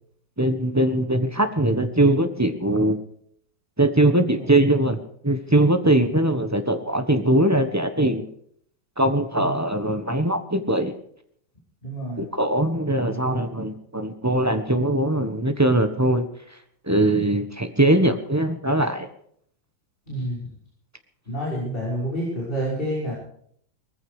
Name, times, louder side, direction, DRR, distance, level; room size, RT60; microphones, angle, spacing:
voice 1, 0.4-3.0 3.8-5.0 5.2-8.2 9.0-10.9 12.2-16.3 16.9-19.1, right 1 dB, 10° right, 8 dB, 0.9 m, -21 dB
voice 2, 11.8-12.3 13.0-13.5 20.1-20.5 21.3-23.1, equal, 25° left, -6 dB, 6.3 m, -29 dB
19.5 x 15.0 x 4.9 m, 0.64 s
omnidirectional pair, 2.2 m